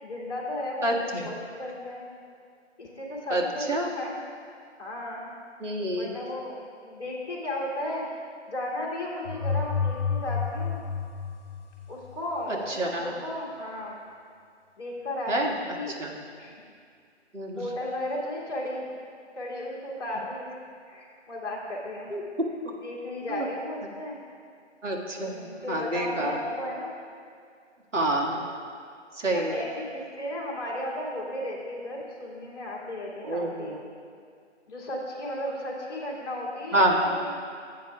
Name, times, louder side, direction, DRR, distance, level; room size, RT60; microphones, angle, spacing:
voice 1, 0.0-2.0 2.8-4.1 4.8-5.3 6.0-8.1 8.5-10.8 11.9-14.0 14.8-15.9 16.4-16.6 17.5-18.9 19.4-20.6 20.9-22.2 22.8-24.2 25.2-26.9 29.2-33.7 34.7-37.3, left 1 dB, 20° left, -8 dB, 2.2 m, -35 dB
voice 2, 0.8-1.2 3.3-3.4 3.7-3.9 5.6-6.1 12.5-13.1 15.3-15.5 15.9-16.1 17.3-17.6 22.1-22.2 23.3-23.5 24.8-26.4 27.9-28.5 29.2-29.6 33.2-33.8 36.7-37.1, right 1 dB, 85° right, -1 dB, 1.9 m, -27 dB
sound 1, 9.3-12.1, left 5 dB, 40° left, 1.6 m, -30 dB
16.5 x 9.0 x 2.4 m, 2.3 s
figure-of-eight pair, 165°, 36 cm